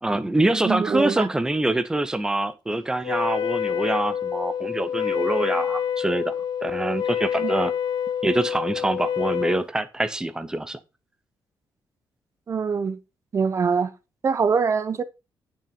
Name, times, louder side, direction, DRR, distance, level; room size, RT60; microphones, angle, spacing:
voice 1, 0.0-6.3 6.6-7.7 8.2-10.8, right 2 dB, 10° right, 0.8 m, -25 dB
voice 2, 0.6-1.3 7.4-7.5 12.5-13.0 13.3-13.9 14.2-15.0, right 5 dB, 35° right, 0.9 m, -23 dB
Wind instrument woodwind instrument, 3.0-9.7, left 8 dB, 55° left, 0.4 m, -27 dB
9.4 x 6.0 x 4.3 m
wide cardioid pair, 170°, 9 cm